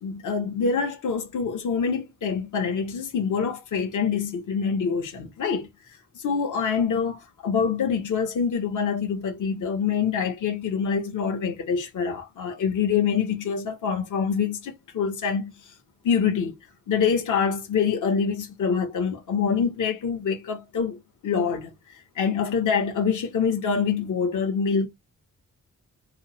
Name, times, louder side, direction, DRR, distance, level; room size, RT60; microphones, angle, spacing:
voice 1, 0.0-5.7 6.1-15.5 16.0-16.6 16.9-21.7 22.1-24.9, left 6 dB, 75° left, 1.2 m, -25 dB
5.2 x 2.1 x 4.3 m
wide cardioid pair, 160°, 31 cm